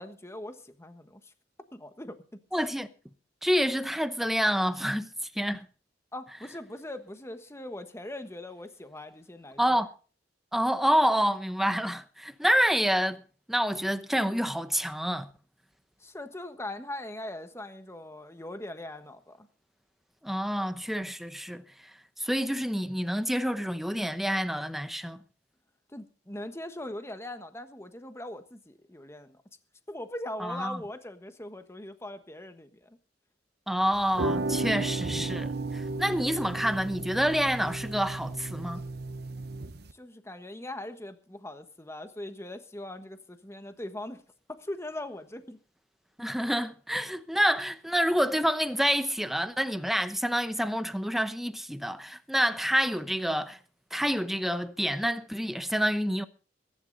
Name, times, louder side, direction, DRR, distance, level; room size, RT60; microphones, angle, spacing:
voice 1, 0.0-1.3 1.7-2.2 6.1-9.8 16.0-19.5 25.9-29.4 29.9-33.0 39.9-44.2 44.5-45.6, left 1 dB, 15° left, 1.3 m, -41 dB
voice 2, 2.5-2.9 3.4-5.1 5.3-5.6 9.6-9.9 10.5-13.2 13.5-15.3 20.2-21.6 22.2-25.2 30.4-30.8 33.7-38.9 46.2-53.6 53.9-56.2, equal, ahead, 0.9 m, -28 dB
sound 1, 33.9-39.9, right 2 dB, 60° right, 0.8 m, -34 dB
21.5 x 11.0 x 4.0 m
head